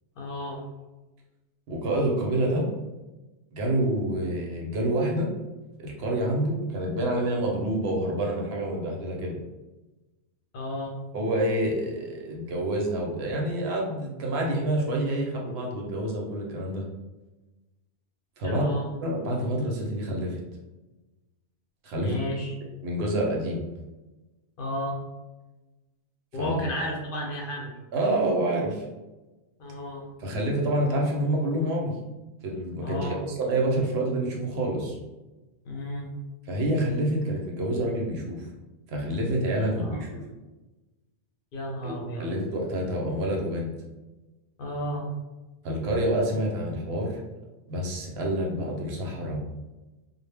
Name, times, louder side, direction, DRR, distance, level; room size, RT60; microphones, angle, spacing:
voice 1, 0.2-0.6 10.5-11.0 18.4-18.9 22.0-22.5 24.6-25.0 26.3-27.7 29.6-30.1 32.8-33.2 35.6-36.1 39.6-40.0 41.5-42.3 44.6-45.1, equal, 60° left, -1 dB, 0.7 m, -33 dB
voice 2, 1.7-2.7 3.5-5.3 5.8-9.4 11.1-16.8 18.4-18.7 19.0-20.4 21.8-22.2 22.8-23.6 26.4-26.6 27.9-28.8 30.2-31.9 32.4-35.0 36.5-38.5 38.9-40.2 41.8-43.7 45.6-47.2 47.7-49.4, right 1 dB, 70° right, -1 dB, 0.8 m, -27 dB
2.1 x 2.0 x 3.3 m, 1.1 s
omnidirectional pair, 1.1 m